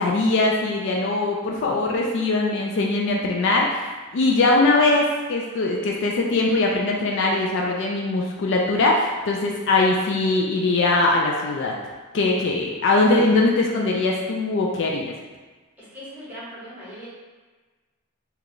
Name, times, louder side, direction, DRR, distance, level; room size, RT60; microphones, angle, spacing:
voice 1, 0.0-3.8 4.1-11.7 12.1-15.1, left 2 dB, 55° left, -1 dB, 0.3 m, -21 dB
voice 2, 15.8-17.1, equal, 10° right, -10 dB, 1.2 m, -39 dB
3.0 x 2.2 x 3.7 m, 1.3 s
head